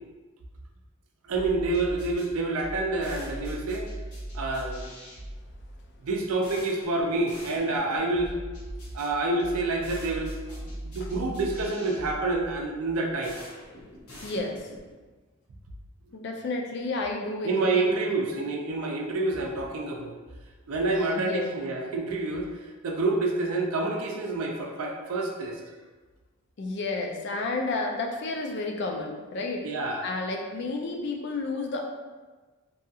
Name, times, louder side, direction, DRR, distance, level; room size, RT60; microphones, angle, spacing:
voice 1, 1.2-3.9 4.3-4.8 6.0-8.3 8.9-13.4 17.4-20.2 20.7-22.5 22.8-25.6 29.6-30.0, right 2 dB, 80° right, 1 dB, 0.4 m, -28 dB
sound 1, 1.3-14.9, right 1 dB, 85° left, 0.8 m, -41 dB
voice 2, 14.2-14.7 16.1-18.2 20.9-21.5 26.6-29.7 30.0-31.9, left 3 dB, 50° left, 1 dB, 0.3 m, -31 dB
2.7 x 2.3 x 2.7 m, 1.3 s
head